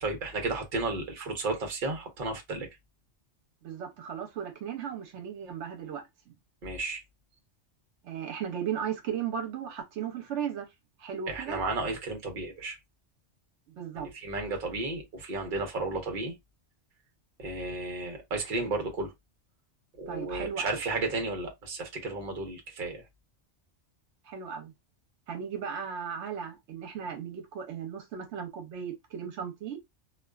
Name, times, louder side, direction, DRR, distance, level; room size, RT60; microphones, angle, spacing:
voice 1, 0.0-2.7 6.6-7.0 11.3-12.8 13.9-16.3 17.4-19.1 19.9-23.0, right 3 dB, 50° right, 0.9 m, -33 dB
voice 2, 3.6-6.0 8.0-10.7 11.0-11.6 13.8-14.1 20.1-20.8 24.2-24.7 25.3-29.8, right 8 dB, 80° right, 1.0 m, -36 dB
2.4 x 2.3 x 2.2 m
omnidirectional pair, 1.2 m